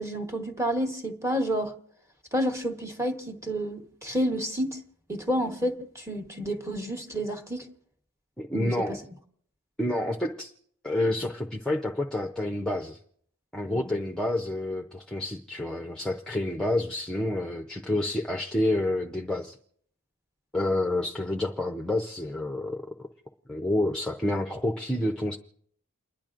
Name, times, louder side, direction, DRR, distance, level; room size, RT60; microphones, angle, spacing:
voice 1, 0.0-1.7 2.3-4.8 5.1-7.7 8.5-9.0 13.7-14.0, equal, 15° right, 4 dB, 1.1 m, -30 dB
voice 2, 8.4-9.0 9.8-10.5 10.8-13.0 13.5-19.6 20.5-23.1 23.5-25.4, left 1 dB, 5° left, 0 dB, 0.5 m, -29 dB
29.5 x 10.5 x 2.5 m, 0.64 s
head